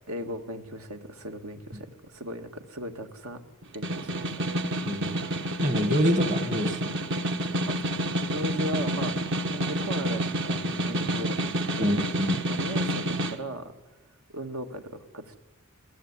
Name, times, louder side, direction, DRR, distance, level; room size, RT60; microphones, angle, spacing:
voice 1, 0.1-4.3 7.7-8.0 8.3-9.1 9.5-12.0 12.5-13.7 14.3-15.4, equal, 80° right, 6 dB, 1.9 m, -37 dB
Snare drum, 3.6-13.4, right 1 dB, 60° right, 1.3 m, -29 dB
voice 2, 4.7-5.2 5.6-6.9 11.8-12.4, equal, 35° right, 8 dB, 1.5 m, -26 dB
21.5 x 16.5 x 9.7 m, 1.0 s
head